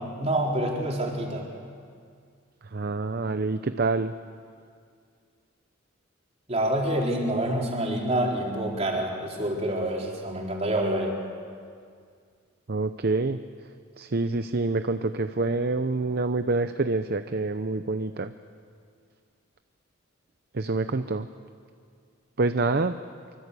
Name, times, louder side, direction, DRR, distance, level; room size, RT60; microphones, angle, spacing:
voice 1, 0.0-1.5 6.5-11.1, right 1 dB, 30° right, -1 dB, 4.1 m, -27 dB
voice 2, 2.7-4.1 12.7-13.4 14.0-18.3 20.5-21.3 22.4-23.0, right 3 dB, 50° right, 10 dB, 0.7 m, -26 dB
24.5 x 24.5 x 8.3 m, 2.2 s
head